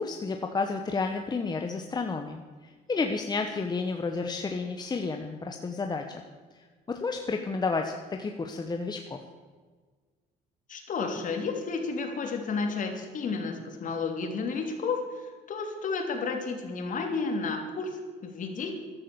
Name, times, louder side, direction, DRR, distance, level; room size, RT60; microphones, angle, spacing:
voice 1, 0.0-6.2 6.9-9.2, left 4 dB, 25° left, 4 dB, 1.2 m, -31 dB
voice 2, 10.7-18.7, left 4 dB, 50° left, 4 dB, 3.1 m, -32 dB
14.0 x 11.5 x 7.1 m, 1.5 s
cardioid pair, 110°, 17 cm